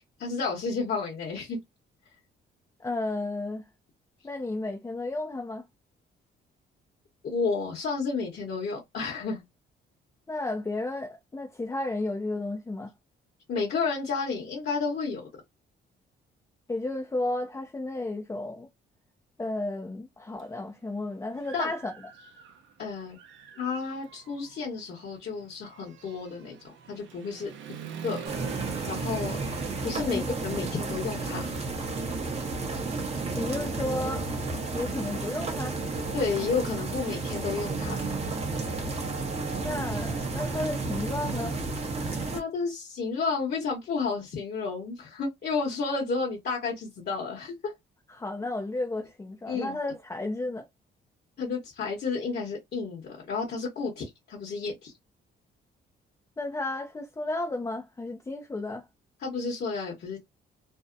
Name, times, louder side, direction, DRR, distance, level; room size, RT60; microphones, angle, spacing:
voice 1, 0.2-1.6 7.2-9.4 13.5-15.3 21.5-21.7 22.8-23.2 23.6-26.6 26.9-27.5 28.0-28.2 28.9-29.4 29.8-31.5 36.1-38.1 42.3-47.7 49.5-49.8 51.4-54.9 59.2-60.2, left 4 dB, 55° left, 1.0 m, -31 dB
voice 2, 2.8-3.6 4.2-5.6 10.3-12.9 16.7-18.7 19.4-21.9 30.1-30.2 33.3-34.3 34.7-35.8 39.5-41.6 48.1-50.7 56.4-58.8, left 2 dB, 15° left, 0.4 m, -33 dB
Human voice / Motorcycle, 20.4-20.5 21.0-22.8 23.1-31.7, right 7 dB, 75° right, 0.6 m, -45 dB
sound 1, 28.3-42.4, right 3 dB, 30° right, 0.8 m, -32 dB
2.6 x 2.0 x 2.5 m
cardioid pair, 90°, 20 cm